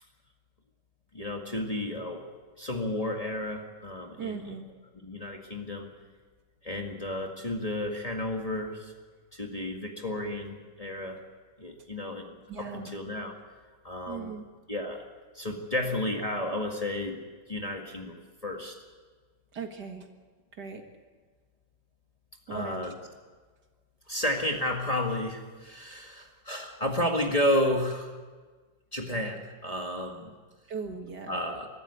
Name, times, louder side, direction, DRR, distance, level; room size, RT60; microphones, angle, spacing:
voice 1, 1.1-2.2 2.6-4.5 5.0-5.9 6.6-8.9 9.3-11.2 11.6-13.4 13.8-14.3 14.7-15.1 15.3-17.2 17.5-18.1 18.4-18.8 22.5-22.9 24.1-28.1 28.9-30.3 31.3-31.7, left 1 dB, 20° left, 1 dB, 1.9 m, -32 dB
voice 2, 4.2-4.7 12.5-12.9 14.1-14.5 19.5-20.1 20.5-20.8 22.5-22.9 30.7-31.4, right 5 dB, 60° right, 4 dB, 2.3 m, -38 dB
23.5 x 13.0 x 9.6 m, 1.4 s
omnidirectional pair, 2.1 m